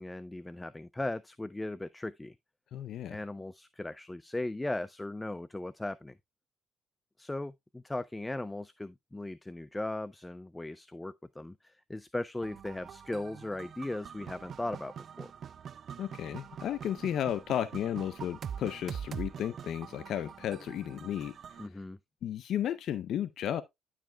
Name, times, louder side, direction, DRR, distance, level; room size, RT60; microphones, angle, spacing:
voice 1, 0.0-2.3 3.1-6.1 7.2-15.3 21.6-22.0, left 2 dB, 15° left, 0.4 m, -38 dB
voice 2, 2.7-3.2 16.0-21.3 22.2-23.6, left 10 dB, 65° left, 0.5 m, -33 dB
sound 1, 12.4-21.7, right 8 dB, 55° right, 0.4 m, -44 dB
12.0 x 4.9 x 2.2 m
supercardioid pair, 70°, 0 cm